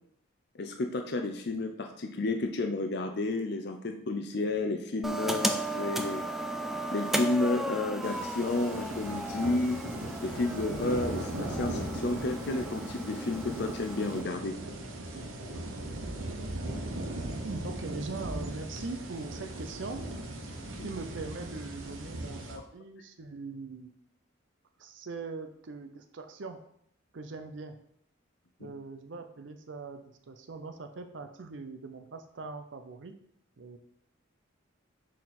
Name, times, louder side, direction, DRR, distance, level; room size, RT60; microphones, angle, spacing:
voice 1, 0.6-6.2 6.9-9.8 10.2-14.5 20.8-20.9 22.5-22.6 28.6-28.7, left 2 dB, 55° left, 4 dB, 0.5 m, -31 dB
sound 1, 5.0-14.2, right 1 dB, ahead, 0.3 m, -35 dB
sound 2, 8.0-22.6, right 1 dB, 80° right, 0.9 m, -38 dB
voice 2, 17.4-20.1 20.8-23.9 24.8-26.6 27.1-27.8 28.6-33.1 33.6-33.8, right 3 dB, 65° right, 7 dB, 0.6 m, -41 dB
6.3 x 4.1 x 4.3 m, 0.69 s
head